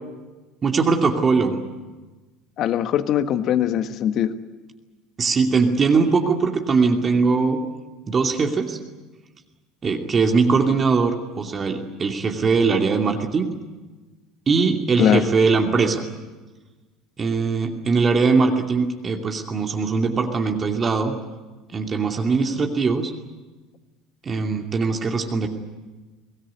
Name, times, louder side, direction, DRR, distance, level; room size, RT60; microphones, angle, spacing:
voice 1, 0.6-1.6 5.2-7.6 8.1-8.8 9.8-13.5 14.5-16.0 17.2-21.1 21.7-23.1 24.2-25.5, right 4 dB, 30° right, 2 dB, 2.6 m, -21 dB
voice 2, 2.6-4.3 15.0-15.2, left 10 dB, 50° left, 11 dB, 1.5 m, -21 dB
24.0 x 18.5 x 9.7 m, 1.3 s
figure-of-eight pair, 65°, 0 cm